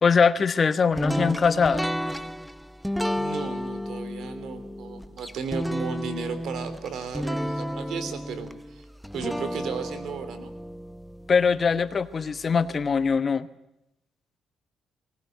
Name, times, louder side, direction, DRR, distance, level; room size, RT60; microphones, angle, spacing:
voice 1, 0.0-1.8 11.3-13.5, left 5 dB, 40° left, 13 dB, 1.1 m, -22 dB
sound 1, 1.0-12.0, equal, ahead, 0.9 m, -32 dB
voice 2, 3.1-8.9 9.1-10.5, right 5 dB, 75° right, 11 dB, 3.3 m, -35 dB
20.0 x 19.0 x 9.3 m, 0.86 s
cardioid pair, 90°, 0 cm